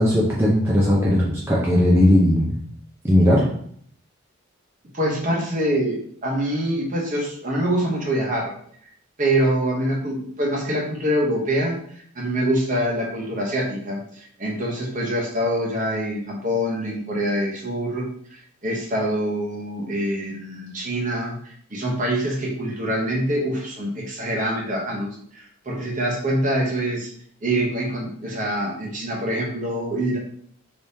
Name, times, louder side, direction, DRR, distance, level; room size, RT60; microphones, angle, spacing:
voice 1, 0.0-2.6 3.0-3.4, left 1 dB, 10° right, -6 dB, 0.5 m, -17 dB
voice 2, 4.9-8.5 9.2-18.0 18.3-27.1 27.4-30.2, right 1 dB, 40° right, -2 dB, 0.9 m, -25 dB
3.5 x 3.0 x 2.7 m, 0.62 s
head